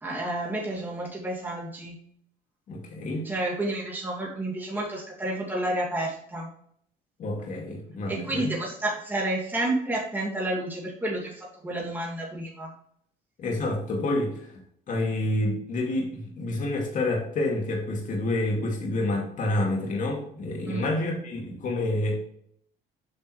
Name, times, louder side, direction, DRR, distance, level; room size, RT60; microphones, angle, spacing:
voice 1, 0.0-1.9 3.2-6.5 8.1-12.7 20.7-20.8, right 1 dB, 10° right, -4 dB, 2.3 m, -30 dB
voice 2, 2.7-3.3 7.2-8.5 13.4-14.6 14.9-22.2, left 2 dB, 50° left, -1 dB, 2.3 m, -28 dB
8.5 x 5.5 x 3.2 m, 0.67 s
cardioid pair, 110°, 17 cm